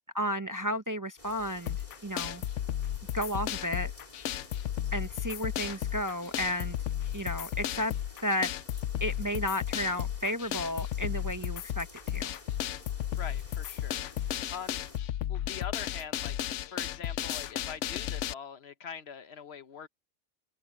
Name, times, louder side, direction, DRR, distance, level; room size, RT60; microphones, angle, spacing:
voice 1, 0.0-1.8 2.0-2.4 3.1-3.9 4.9-6.8 7.1-7.9 8.2-8.5 9.0-12.3, left 1 dB, 20° right, 0.6 m, -33 dB
sound 1, 1.2-15.0, left 2 dB, 35° left, 3.5 m, -53 dB
sound 2, 1.7-18.3, left 11 dB, 85° left, 0.9 m, -34 dB
voice 2, 13.2-14.1 14.5-14.8 15.3-16.4 16.6-19.9, left 7 dB, 65° left, 1.1 m, -43 dB
omnidirectional pair, 1.2 m